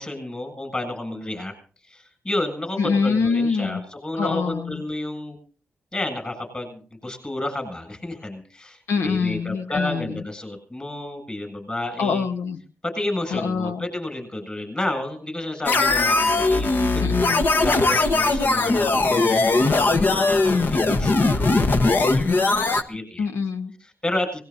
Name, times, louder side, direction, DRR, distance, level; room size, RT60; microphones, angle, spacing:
voice 1, 0.0-1.5 1.9-5.4 5.9-12.3 12.8-17.0 17.3-23.3 23.8-24.4, left 1 dB, 25° left, 7 dB, 7.6 m, -31 dB
voice 2, 2.8-3.8 4.2-4.8 8.9-10.1 12.0-12.6 13.3-13.8 17.0-17.5 23.2-23.7, left 5 dB, 85° left, 8 dB, 1.5 m, -24 dB
sound 1, 15.7-22.8, left 3 dB, 50° left, 1.4 m, -20 dB
24.5 x 19.5 x 2.8 m, 0.40 s
cardioid pair, 65°, 4 cm